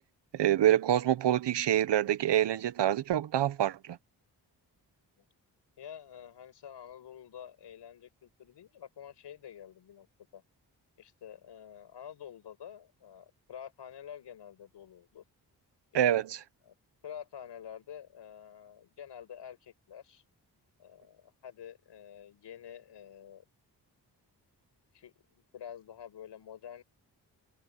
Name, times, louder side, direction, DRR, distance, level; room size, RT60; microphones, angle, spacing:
voice 1, 0.3-4.0 15.9-16.2, right 11 dB, 85° right, 1.0 m, -26 dB
voice 2, 5.8-10.1 10.3-10.4 11.0-15.2 15.9-16.0 16.6-16.7 17.0-20.2 20.8-23.4 24.9-26.8, left 9 dB, 90° left, 5.9 m, -48 dB
cardioid pair, 45°, 41 cm